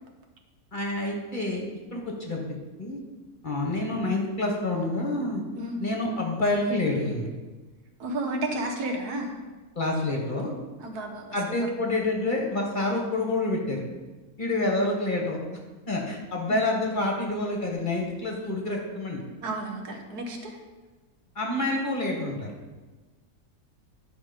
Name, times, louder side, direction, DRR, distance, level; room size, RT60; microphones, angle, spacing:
voice 1, 0.7-1.6 1.9-2.4 2.8-3.0 3.4-5.4 5.8-7.3 9.7-10.5 11.3-13.8 14.4-15.4 15.9-19.2 21.3-22.5, left 2 dB, 35° left, 0 dB, 1.5 m, -27 dB
voice 2, 8.0-9.4 10.8-11.7 16.5-16.6 19.4-20.6, right 1 dB, 85° right, 2 dB, 1.7 m, -32 dB
10.5 x 5.3 x 5.1 m, 1.2 s
omnidirectional pair, 1.6 m